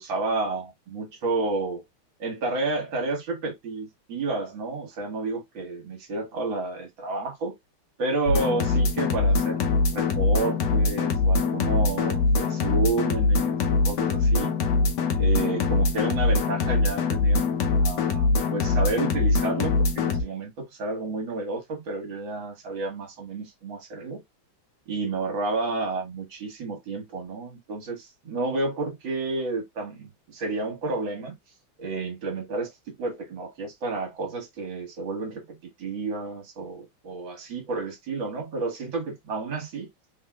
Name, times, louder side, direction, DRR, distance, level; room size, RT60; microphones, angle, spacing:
voice 1, 0.0-1.8 2.2-7.6 8.0-9.6 9.9-14.6 15.2-24.2 24.9-31.4 31.8-39.9, right 3 dB, 65° right, 2.2 m, -31 dB
sound 1, 8.3-20.2, left 3 dB, 60° left, 1.3 m, -23 dB
4.2 x 3.6 x 2.3 m
omnidirectional pair, 2.4 m